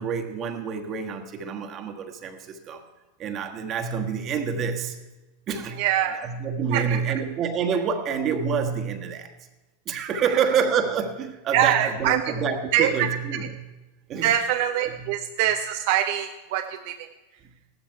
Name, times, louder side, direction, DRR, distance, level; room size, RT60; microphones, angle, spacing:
voice 1, 0.0-2.8 3.2-5.0 5.5-5.8 6.2-9.3 9.9-13.5 14.1-14.3, right 6 dB, 40° right, 5 dB, 1.4 m, -27 dB
voice 2, 5.8-6.2 6.7-7.2 11.5-12.3 12.7-13.2 14.2-17.1, right 10 dB, 60° right, 5 dB, 0.7 m, -24 dB
14.5 x 12.5 x 4.7 m, 1.1 s
hypercardioid pair, 100°, 0 cm